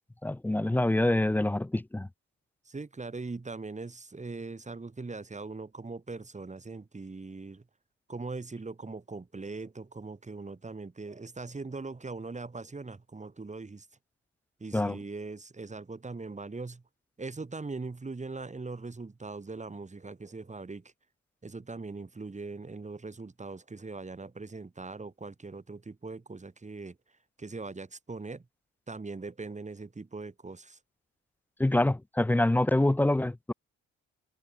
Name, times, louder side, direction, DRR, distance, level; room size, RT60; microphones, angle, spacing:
voice 1, 0.2-2.1 14.7-15.0 31.6-33.5, left 1 dB, 5° left, 0.4 m, -26 dB
voice 2, 2.7-7.6 8.1-13.9 14.6-16.8 17.2-20.9 21.4-27.0 27.4-28.4 28.9-30.8, right 3 dB, 25° right, 5.9 m, -41 dB
cardioid pair, 90°, 30 cm